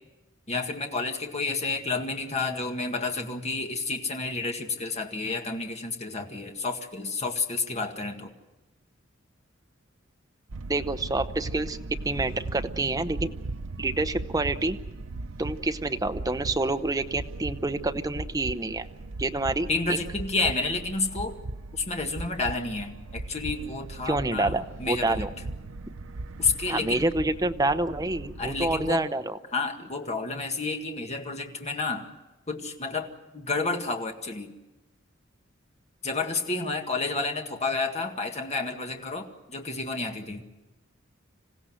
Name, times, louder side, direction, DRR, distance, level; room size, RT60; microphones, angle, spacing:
voice 1, 0.5-8.3 19.7-21.4 21.7-25.3 26.4-27.1 28.4-29.1 29.5-32.1 32.5-33.1 33.3-34.5 36.0-40.4, left 3 dB, 35° left, 4 dB, 1.9 m, -30 dB
sound 1, 10.5-28.9, right 2 dB, 80° right, 0.7 m, -38 dB
voice 2, 10.7-11.8 12.0-13.3 13.8-14.8 15.4-18.9 19.2-20.0 24.0-25.3 26.7-29.4, right 2 dB, 20° right, 7 dB, 0.8 m, -27 dB
27.0 x 16.0 x 7.9 m, 1.0 s
head